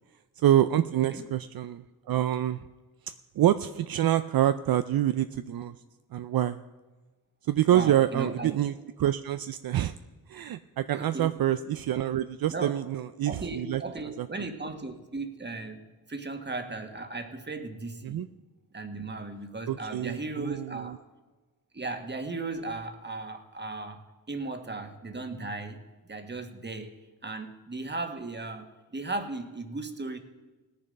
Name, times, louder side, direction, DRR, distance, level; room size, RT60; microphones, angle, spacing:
voice 1, 0.4-2.6 3.0-5.8 6.1-6.6 7.5-8.7 9.0-10.0 10.3-13.8 14.2-14.5 18.0-18.3 19.7-21.0, right 12 dB, 65° right, 11 dB, 0.5 m, -26 dB
voice 2, 7.7-8.5 10.9-11.3 12.5-12.7 13.3-18.3 18.7-21.0 21.7-25.8 26.1-26.9 27.2-30.2, right 3 dB, 30° right, 7 dB, 1.6 m, -36 dB
18.0 x 6.9 x 5.3 m, 1.2 s
cardioid pair, 55°, 38 cm